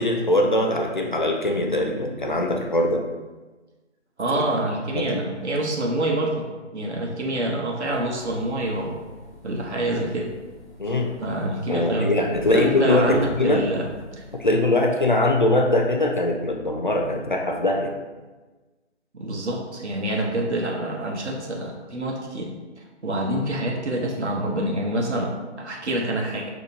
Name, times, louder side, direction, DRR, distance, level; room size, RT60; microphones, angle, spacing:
voice 1, 0.0-3.1 4.3-4.4 4.9-5.2 10.8-11.1 11.7-13.6 14.4-17.9, left 1 dB, 45° left, 2 dB, 0.4 m, -22 dB
voice 2, 4.2-6.5 6.7-9.0 9.4-10.3 11.2-12.1 12.5-13.8 14.2-14.3 19.1-22.5 22.8-26.5, right 1 dB, 65° right, 0 dB, 1.0 m, -26 dB
sound 1, 7.9-14.6, equal, 10° right, 0.6 m, -44 dB
5.7 x 2.9 x 2.7 m, 1.2 s
figure-of-eight pair, 160°, 36 cm